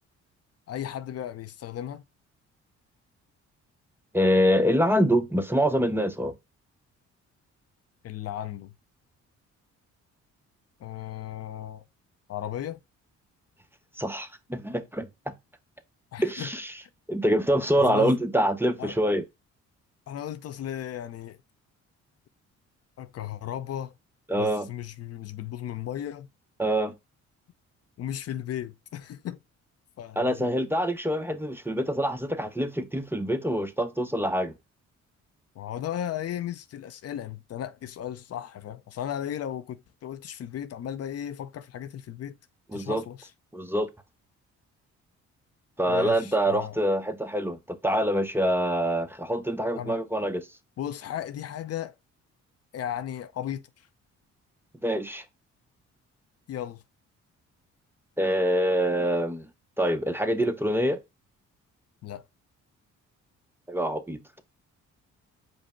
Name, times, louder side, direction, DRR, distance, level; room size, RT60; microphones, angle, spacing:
voice 1, 0.7-2.0 8.0-8.7 10.8-11.8 12.3-12.8 16.1-16.5 17.8-18.1 18.8-19.0 20.1-21.4 23.0-23.9 24.3-26.3 28.0-29.4 30.0-30.6 35.6-42.3 42.7-43.3 45.9-46.8 49.8-50.0 50.8-52.0 52.7-53.6 56.5-56.8 62.0-62.3, left 10 dB, 55° left, 0.5 m, -35 dB
voice 2, 4.1-6.3 14.0-15.3 16.2-16.7 17.1-19.2 24.3-24.7 26.6-26.9 30.2-34.5 42.7-43.0 43.5-43.9 45.8-50.4 54.8-55.2 58.2-59.5 59.8-61.0 63.7-64.4, equal, 5° right, 0.6 m, -25 dB
5.2 x 2.0 x 4.3 m
cardioid pair, 90°, 30 cm